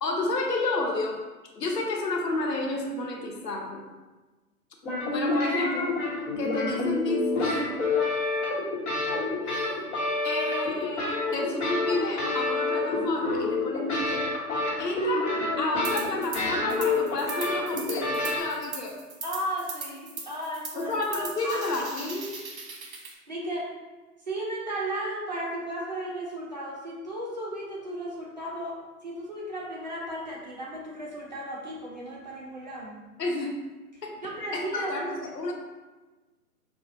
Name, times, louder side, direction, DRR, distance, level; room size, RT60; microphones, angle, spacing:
voice 1, 0.0-1.2 1.5-3.8 5.1-5.9 6.4-7.9 9.4-9.9 10.2-14.2 14.8-15.3 15.6-19.0 20.7-22.4 33.2-33.5 34.0-34.2 34.5-35.5, left 2 dB, 85° left, 1 dB, 1.0 m, -30 dB
sound 1, 4.8-18.4, left 2 dB, 45° left, 1.2 m, -28 dB
sound 2, 15.8-16.4 16.7-23.1, right 4 dB, 60° right, 1.0 m, -39 dB
voice 2, 19.2-20.9 21.2-21.6 23.3-23.7 24.3-33.0 33.9-34.9, right 1 dB, 30° right, -4 dB, 0.5 m, -35 dB
5.4 x 2.4 x 2.6 m, 1.2 s
hypercardioid pair, 150°, 47 cm